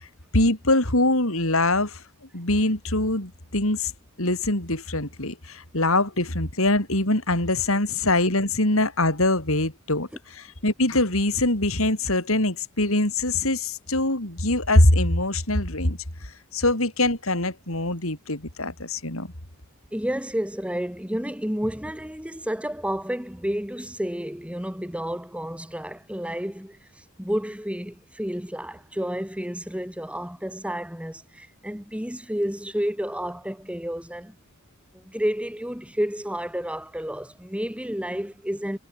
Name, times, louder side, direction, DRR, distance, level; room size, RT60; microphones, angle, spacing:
voice 1, 0.3-2.0 2.3-3.9 4.2-10.1 10.6-16.0 16.5-19.3, left 2 dB, 70° left, 5.4 m, -23 dB
voice 2, 19.9-34.3 34.9-38.8, equal, 5° right, 3.3 m, -30 dB
head